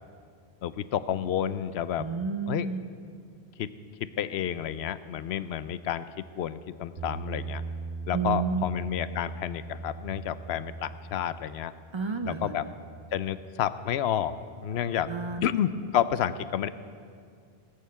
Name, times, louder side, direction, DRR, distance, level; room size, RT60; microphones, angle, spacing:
voice 1, 0.6-2.1 2.5-2.7 3.6-3.7 4.2-7.6 8.1-11.7 12.2-12.7 13.1-14.3 14.6-15.1 15.4-16.7, left 10 dB, 80° left, 14 dB, 0.8 m, -30 dB
voice 2, 2.0-2.8 8.1-8.6 11.9-12.6 15.1-15.4, right 5 dB, 40° right, 8 dB, 0.4 m, -30 dB
Bass guitar, 7.0-13.2, right 4 dB, 70° right, 1.5 m, -40 dB
17.5 x 6.6 x 8.3 m, 2.2 s
omnidirectional pair, 1.1 m